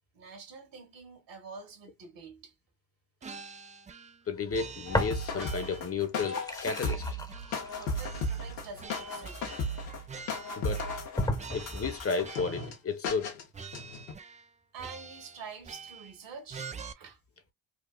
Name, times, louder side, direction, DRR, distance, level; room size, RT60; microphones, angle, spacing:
voice 1, 0.1-2.5 7.8-9.5 14.7-17.2, right 5 dB, 60° right, 2.1 m, -47 dB
sound 1, 3.2-4.2 4.5-5.9 6.2-7.7 7.9-11.1 11.4-12.7 13.1-13.3 13.5-14.5 14.8-16.2 16.5-16.9, right 5 dB, 15° right, 0.4 m, -46 dB
voice 2, 4.3-7.0 10.6-10.9 11.5-13.4, left 5 dB, 30° left, 1.1 m, -33 dB
sound 2, 4.9-12.7 13.0-13.4 13.7-14.1, left 2 dB, 85° left, 1.5 m, -36 dB
sound 3, 4.9-5.7 6.0-10.0 10.5-10.6 11.2-12.1, left 1 dB, 10° left, 1.0 m, -35 dB
4.3 x 2.4 x 2.3 m
hypercardioid pair, 65°, 49 cm